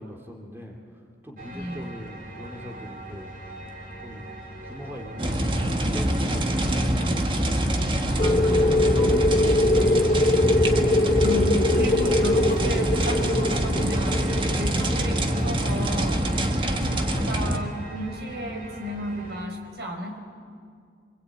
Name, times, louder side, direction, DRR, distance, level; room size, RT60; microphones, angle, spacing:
voice 1, 0.0-3.4 4.0-4.3 4.6-7.4 8.1-10.4, equal, 15° right, 1 dB, 2.6 m, -41 dB
sound 1, 1.4-19.5, right 1 dB, 50° right, 3.4 m, -41 dB
voice 2, 1.5-1.9 8.1-8.9 11.2-16.3 16.8-20.2, equal, 75° right, 3 dB, 4.3 m, -33 dB
sound 2, 5.2-17.6, right 1 dB, 30° right, 1.5 m, -25 dB
sound 3, 8.2-16.5, left 2 dB, 35° left, 1.3 m, -23 dB
25.0 x 24.0 x 8.8 m, 2.2 s
head